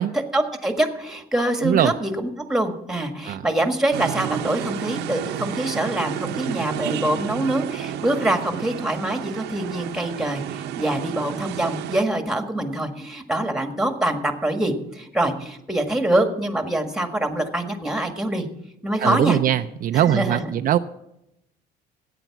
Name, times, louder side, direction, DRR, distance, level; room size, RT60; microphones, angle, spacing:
voice 1, 0.1-18.5 18.8-19.4 19.9-20.5, right 1 dB, 5° right, 5 dB, 1.7 m, -24 dB
voice 2, 1.6-1.9 3.2-3.5 19.0-20.8, right 11 dB, 55° right, 8 dB, 0.5 m, -21 dB
sound 1, 3.9-12.0, right 11 dB, 85° right, 0.8 m, -31 dB
13.0 x 9.1 x 5.9 m, 0.83 s
cardioid pair, 110°, 17 cm